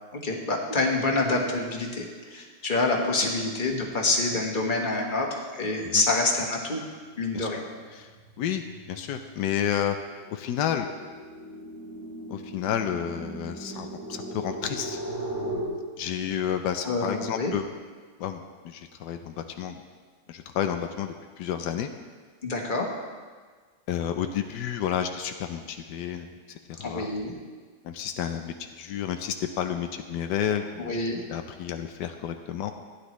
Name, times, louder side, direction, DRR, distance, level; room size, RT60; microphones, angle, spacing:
voice 1, 0.1-6.8 7.2-7.6 16.8-17.5 22.4-22.9 26.8-27.3 30.8-31.2, left 2 dB, 30° left, 0 dB, 1.4 m, -27 dB
sound 1, 6.1-6.3 6.7-15.6, right 1 dB, 80° right, 4.5 m, -39 dB
voice 2, 8.9-10.0 10.3-10.9 12.3-15.0 16.0-17.6 18.2-19.8 20.3-21.9 23.9-26.3 26.7-27.1 27.8-31.0 31.3-32.7, left 9 dB, 85° left, 6 dB, 1.2 m, -30 dB
15.0 x 9.8 x 3.1 m, 1.5 s
omnidirectional pair, 1.8 m